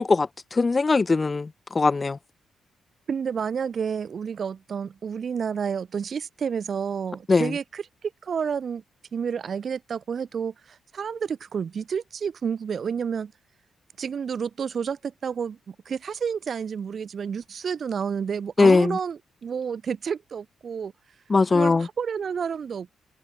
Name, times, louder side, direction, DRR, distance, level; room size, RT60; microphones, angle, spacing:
voice 1, 0.0-2.2 7.3-7.5 18.6-19.0 21.3-21.9, left 3 dB, 25° left, 0.9 m, -20 dB
voice 2, 3.1-8.8 9.1-13.3 14.0-20.9 21.5-23.0, right 6 dB, 45° right, 3.3 m, -30 dB
cardioid pair, 135°, 0 cm